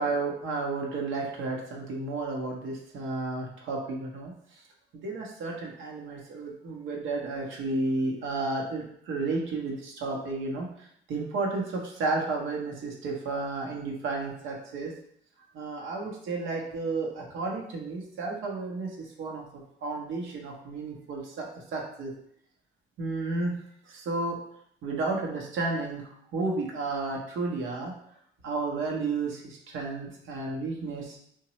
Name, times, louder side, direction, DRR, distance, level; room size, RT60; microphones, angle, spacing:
voice 1, 0.0-4.6 5.0-14.9 15.5-19.4 19.8-22.1 23.0-23.6 23.9-24.4 24.8-27.9 28.4-31.2, right 3 dB, 80° right, 0 dB, 0.8 m, -32 dB
3.0 x 2.2 x 2.9 m, 0.69 s
cardioid pair, 90°, 20 cm